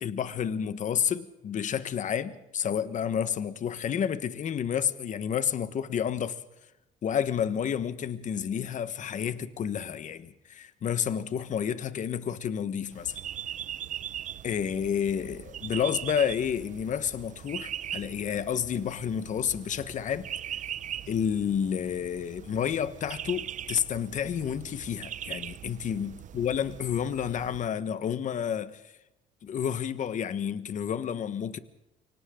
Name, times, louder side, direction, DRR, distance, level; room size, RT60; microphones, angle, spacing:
voice 1, 0.0-6.4 7.0-13.2 14.4-20.3 21.1-28.9 29.4-31.6, left 8 dB, 50° left, 1.3 m, -30 dB
sound 1, 12.9-27.7, right 10 dB, 50° right, 0.6 m, -40 dB
29.0 x 25.0 x 3.8 m
cardioid pair, 110°, 17 cm